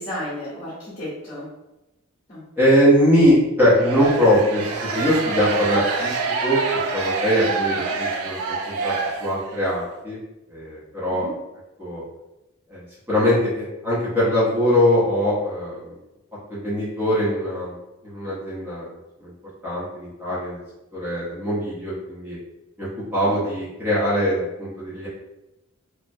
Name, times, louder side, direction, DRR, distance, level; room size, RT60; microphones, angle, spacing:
voice 1, 0.0-1.5 2.3-2.4 4.9-5.0 7.5-8.0 11.1-11.3 23.2-23.3, left 1 dB, 35° left, -11 dB, 0.9 m, -34 dB
voice 2, 2.6-6.2 6.4-6.6 6.9-8.9 9.2-10.2 10.5-11.3 11.8-12.0 12.7-15.9 16.5-17.7 18.0-18.9 19.2-19.3 19.6-20.6 20.9-22.4 22.8-25.1, equal, 10° right, -10 dB, 0.8 m, -21 dB
sound 1, 3.8-9.7, right 4 dB, 85° right, 0.4 m, -26 dB
3.2 x 2.1 x 2.6 m, 0.97 s
head